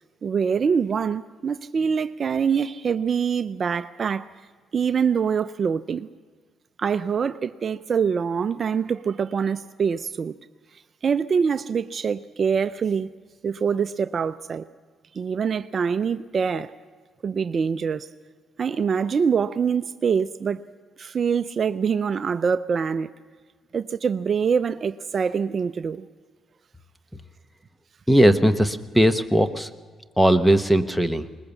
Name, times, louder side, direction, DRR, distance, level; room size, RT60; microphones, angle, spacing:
voice 1, 0.2-4.3 4.7-6.1 6.8-10.3 10.7-13.1 13.4-14.6 15.1-16.7 17.2-18.1 18.6-20.6 21.0-23.1 23.7-26.1, right 6 dB, 45° right, 0.5 m, -24 dB
voice 2, 28.1-29.7 30.2-31.3, right 1 dB, ahead, 1.0 m, -18 dB
20.5 x 20.5 x 7.1 m
cardioid pair, 90°, 0 cm